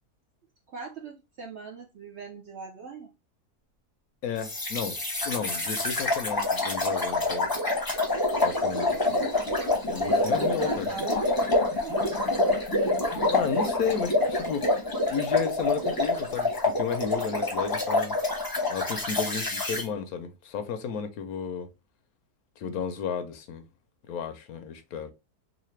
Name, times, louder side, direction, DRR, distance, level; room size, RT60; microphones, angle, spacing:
voice 1, 0.7-3.1 10.0-12.2, right 5 dB, 65° right, 0.7 m, -40 dB
voice 2, 4.2-5.0 5.2-7.5 8.4-9.2 9.8-10.9 13.3-14.8 15.1-18.2 18.7-21.7 22.6-23.6 24.1-25.1, left 6 dB, 70° left, 1.0 m, -33 dB
sound 1, 4.4-19.8, left 2 dB, 20° left, 0.7 m, -27 dB
4.1 x 2.5 x 3.1 m
omnidirectional pair, 1.7 m